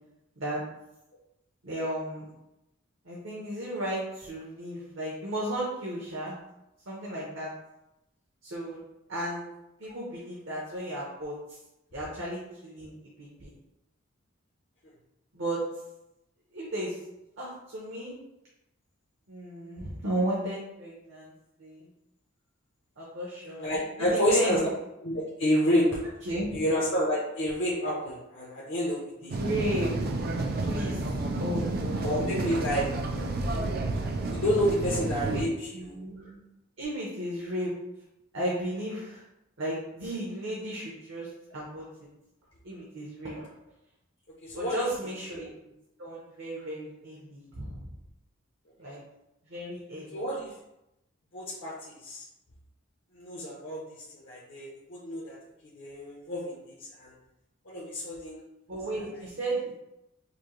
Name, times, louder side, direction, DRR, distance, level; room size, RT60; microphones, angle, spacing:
voice 1, 1.6-2.3 3.0-6.3 6.9-7.5 8.4-8.8 9.1-9.4 9.8-11.6 11.9-13.5 15.3-15.7 16.5-17.0 17.4-18.1 19.3-21.3 21.6-21.9 23.0-24.6 26.3-26.6 29.2-29.9 30.3-31.0 31.4-32.5 33.1-33.3 33.5-33.7 35.2-35.4 35.7-36.4 36.8-37.8 38.3-39.2 39.6-42.1 42.6-43.5 44.5-45.5 46.0-47.9 48.8-49.0 49.4-50.2 58.7-59.7, right 1 dB, 65° right, -5 dB, 0.9 m, -34 dB
voice 2, 23.6-24.6 25.0-26.0 26.5-29.4 32.0-32.9 34.3-35.5 35.8-36.0 44.4-44.9 50.1-50.5 51.3-52.2 53.1-55.4 55.7-57.1 57.6-58.4 58.9-59.0, equal, 60° left, -6 dB, 0.8 m, -29 dB
sound 1, 29.3-35.4, right 2 dB, 45° right, 0.4 m, -30 dB
5.1 x 2.2 x 3.1 m, 0.89 s
head